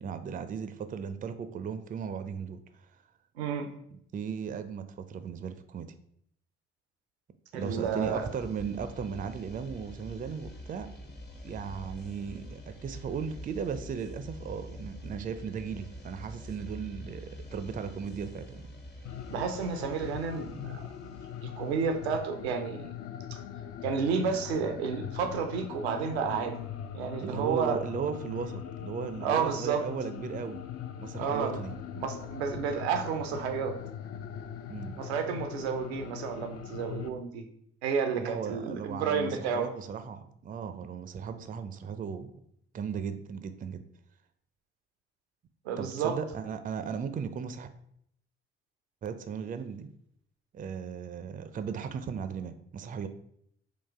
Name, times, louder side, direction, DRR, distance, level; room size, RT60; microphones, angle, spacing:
voice 1, 0.0-2.6 3.9-5.9 7.5-10.9 11.4-18.6 27.2-30.6 31.0-31.7 34.7-35.0 38.2-42.3 42.7-43.8 45.8-47.7 49.0-49.9 50.5-53.1, right 6 dB, 25° right, 10 dB, 0.4 m, -36 dB
voice 2, 3.4-3.7 7.5-8.2 19.3-20.9 21.4-22.9 23.3-23.4 23.8-26.6 26.9-27.8 29.2-29.8 31.1-31.6 31.9-33.8 35.0-37.4 37.8-39.7 45.7-46.2, right 6 dB, 90° right, 6 dB, 0.5 m, -31 dB
sound 1, 7.6-22.4, equal, 35° left, 0.9 m, -46 dB
sound 2, 19.1-37.1, left 9 dB, 50° left, 0.4 m, -41 dB
4.0 x 2.4 x 3.4 m, 0.70 s
hypercardioid pair, 45°, 31 cm